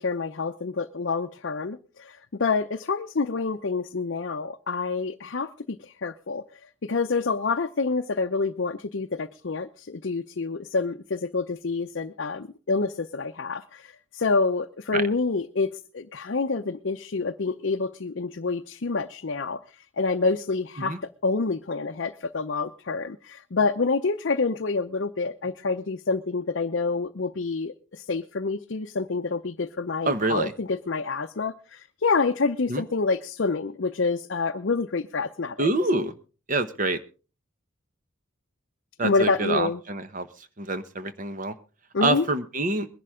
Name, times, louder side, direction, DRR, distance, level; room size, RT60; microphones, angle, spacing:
voice 1, 0.0-6.4 6.8-19.6 20.0-21.0 21.2-35.7 39.0-39.8 41.9-42.2, left 4 dB, 55° left, 0.6 m, -27 dB
voice 2, 30.0-30.5 32.7-32.8 35.6-36.1 36.5-37.0 39.0-41.6 42.0-42.9, right 2 dB, 40° right, 1.0 m, -26 dB
21.0 x 11.0 x 3.6 m
head